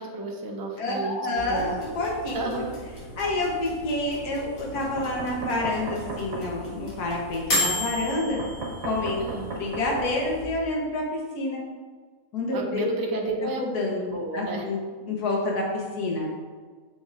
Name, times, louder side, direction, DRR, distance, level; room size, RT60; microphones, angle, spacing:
voice 1, 0.0-1.2 1.5-1.7 2.3-2.8 9.2-9.5 12.5-13.6 14.1-14.6, right 3 dB, 35° right, 1 dB, 0.3 m, -31 dB
voice 2, 0.8-2.6 3.2-8.4 8.8-9.2 9.5-11.6 12.3-12.9 13.6-14.8 15.1-16.3, left 2 dB, 80° left, -2 dB, 1.7 m, -28 dB
sound 1, 1.4-10.4, left 1 dB, 65° left, 2.2 m, -35 dB
Knock, 4.8-6.5 8.4-10.1, right 3 dB, 55° right, 1.6 m, -35 dB
7.0 x 6.5 x 2.5 m, 1.5 s
omnidirectional pair, 1.6 m